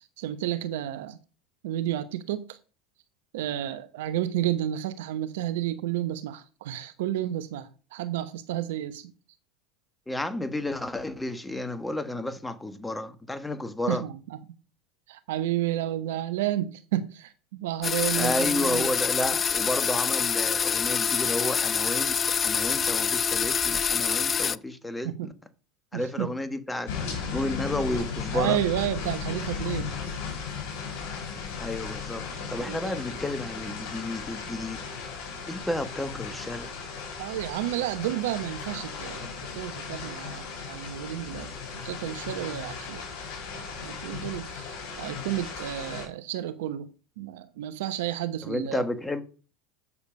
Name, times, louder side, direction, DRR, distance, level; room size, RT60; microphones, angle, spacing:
voice 1, 0.2-1.2 1.6-2.6 3.3-9.1 13.9-14.4 15.1-18.9 25.0-25.3 25.9-26.3 28.3-29.9 32.6-33.0 37.2-39.3 39.5-41.5 41.8-43.0 43.5-46.9 47.2-48.8, right 13 dB, 70° right, 0.9 m, -31 dB
voice 2, 10.1-14.0 18.1-22.2 22.4-25.3 25.9-26.9 27.3-28.6 31.6-34.8 35.5-36.7 48.4-49.2, left 1 dB, 10° left, 1.5 m, -31 dB
cassette tape deck ffwd full tape +start stop clicks, 17.8-24.6, left 7 dB, 30° left, 0.3 m, -26 dB
sound 1, 26.9-46.1, left 6 dB, 60° left, 5.7 m, -36 dB
8.4 x 7.0 x 5.3 m
hypercardioid pair, 80°, 0 cm